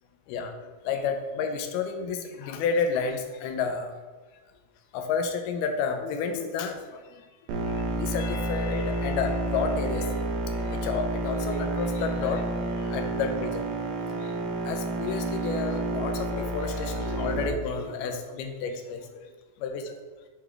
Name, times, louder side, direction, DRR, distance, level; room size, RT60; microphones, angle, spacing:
voice 1, 0.9-3.9 4.9-7.0 7.7-10.2 10.5-12.5 12.8-14.3 14.7-19.1 19.6-20.0, left 5 dB, 80° left, 5 dB, 2.1 m, -31 dB
sound 1, 7.5-17.5, right 2 dB, 75° right, 2.2 m, -30 dB
8.1 x 3.5 x 3.4 m, 1.3 s
omnidirectional pair, 4.0 m